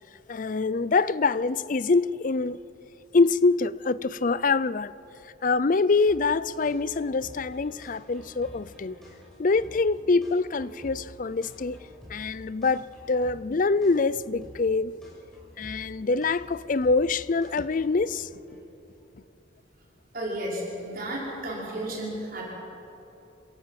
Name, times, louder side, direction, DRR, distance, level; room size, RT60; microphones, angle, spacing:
voice 1, 0.3-2.6 3.1-4.9 5.4-9.0 9.4-11.8 12.1-15.0 15.6-18.3, left 3 dB, 45° left, 0.5 m, -25 dB
sound 1, 6.1-18.6, left 1 dB, ahead, 7.3 m, -49 dB
voice 2, 20.1-22.5, right 1 dB, 50° right, 5.7 m, -33 dB
27.0 x 17.0 x 7.6 m
head